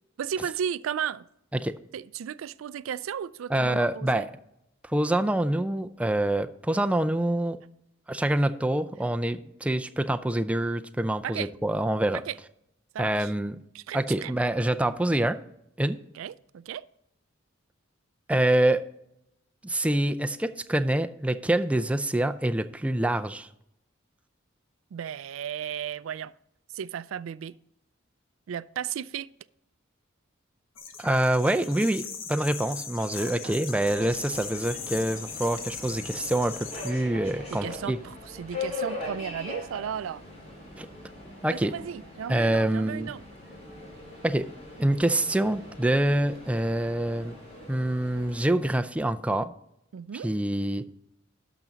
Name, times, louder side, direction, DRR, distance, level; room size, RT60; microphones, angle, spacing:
voice 1, 0.2-1.3 1.9-4.3 11.2-11.5 12.3-12.4 12.9-13.3 13.7-14.3 16.1-16.9 24.9-26.3 26.7-27.6 28.5-29.3 33.1-34.1 37.5-40.2 41.5-43.2 49.9-50.3, right 8 dB, 85° right, 0.3 m, -35 dB
voice 2, 3.5-4.3 4.8-7.6 8.1-12.2 13.0-13.6 13.9-15.4 15.8-16.0 18.3-18.8 19.6-23.5 31.0-38.0 40.8-40.9 41.4-41.7 42.3-43.1 44.2-44.5 44.8-47.4 47.7-49.5 50.2-50.9, right 1 dB, 5° right, 0.4 m, -26 dB
sound 1, 30.8-36.9, left 6 dB, 75° left, 1.3 m, -39 dB
Subway metro underground, 33.8-48.4, left 2 dB, 35° left, 4.1 m, -41 dB
12.0 x 6.0 x 4.0 m
head